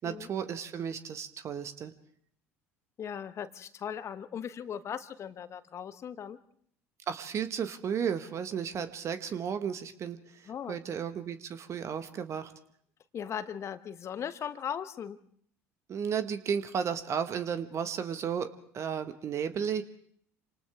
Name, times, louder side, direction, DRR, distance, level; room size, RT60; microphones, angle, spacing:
voice 1, 0.0-1.9 7.1-12.5 15.9-18.5 18.7-19.8, right 7 dB, 40° right, 10 dB, 1.6 m, -33 dB
voice 2, 3.0-6.4 10.5-10.8 13.1-15.2, left 8 dB, 40° left, 13 dB, 1.3 m, -38 dB
28.5 x 26.5 x 3.6 m, 0.64 s
figure-of-eight pair, 65°, 8 cm